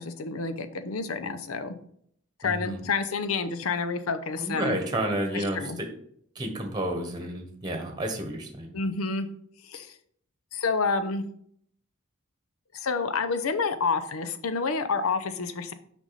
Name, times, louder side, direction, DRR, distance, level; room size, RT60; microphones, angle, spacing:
voice 1, 0.0-1.8 2.4-4.8 5.3-5.8 8.7-9.3 9.6-10.0 10.5-11.3 12.7-15.7, left 4 dB, 85° left, 11 dB, 0.7 m, -29 dB
voice 2, 2.4-2.8 4.4-5.9 6.3-8.8, right 1 dB, 20° right, 4 dB, 1.1 m, -31 dB
6.1 x 5.3 x 4.1 m, 0.66 s
head